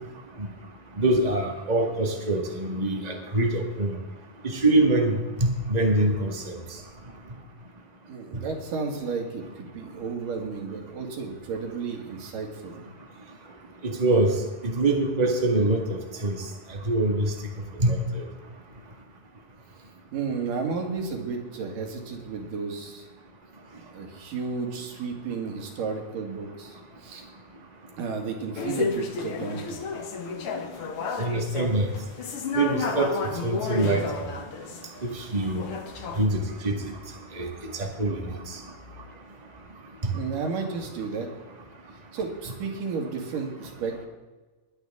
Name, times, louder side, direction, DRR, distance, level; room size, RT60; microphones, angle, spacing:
voice 1, 1.0-3.9 4.4-6.5 13.8-14.3 14.6-16.4 16.8-17.3 17.8-18.2 31.2-31.9 32.5-33.1 33.4-34.2 35.0-35.7 36.2-36.9 37.3-38.6 40.0-40.1, right 2 dB, 45° right, 2 dB, 0.5 m, -24 dB
voice 2, 8.1-12.8 20.1-23.1 23.8-27.3 28.0-29.8 40.1-41.3 42.1-44.1, right 5 dB, 70° right, 2 dB, 3.6 m, -33 dB
sound 1, 28.5-36.2, left 4 dB, 55° left, 1.6 m, -32 dB
20.0 x 11.5 x 3.6 m, 1.2 s
omnidirectional pair, 4.0 m